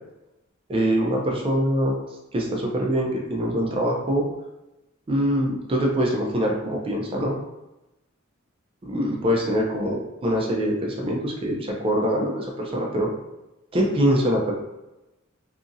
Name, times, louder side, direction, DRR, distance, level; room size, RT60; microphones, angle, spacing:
voice 1, 0.7-1.9 2.3-4.3 5.1-7.3 8.8-13.1 13.7-14.5, equal, 30° right, -1 dB, 0.4 m, -24 dB
2.8 x 2.5 x 2.5 m, 0.96 s
head